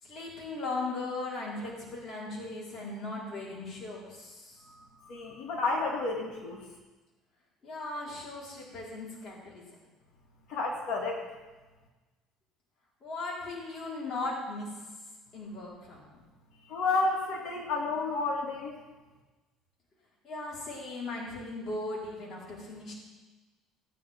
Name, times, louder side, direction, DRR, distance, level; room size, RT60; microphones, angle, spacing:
voice 1, 0.0-4.6 7.6-9.6 13.0-14.9 15.3-16.2 20.2-22.9, left 2 dB, 45° left, -5 dB, 4.4 m, -38 dB
voice 2, 5.1-6.6 10.5-11.3 16.7-18.8, left 3 dB, 65° left, 0 dB, 2.4 m, -31 dB
17.5 x 9.9 x 3.7 m, 1.2 s
cardioid pair, 110°, 0 cm